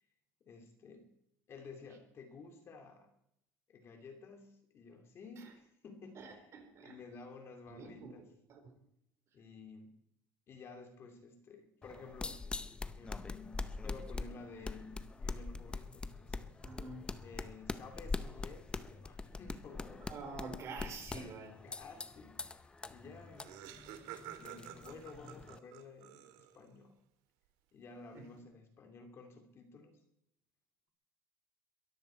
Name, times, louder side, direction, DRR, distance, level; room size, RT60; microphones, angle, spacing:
voice 1, 0.4-1.1 1.5-3.1 3.7-6.5 6.8-8.3 9.3-9.9 10.5-12.4 12.9-16.5 17.2-20.1 20.8-21.3 21.6-23.8 24.3-26.9 27.7-29.9, left 4 dB, 35° left, 5 dB, 2.8 m, -53 dB
voice 2, 6.1-7.0 7.7-8.2 8.5-8.7 16.6-17.1 20.1-21.5 28.1-28.3, right 4 dB, 40° right, 4 dB, 4.1 m, -47 dB
sound 1, 11.8-25.6, left 3 dB, 15° left, 0.6 m, -44 dB
Laughter, 22.8-22.9 23.1-26.8, right 12 dB, 70° right, 2.1 m, -50 dB
22.5 x 14.0 x 4.5 m, 0.76 s
cardioid pair, 150°, 8 cm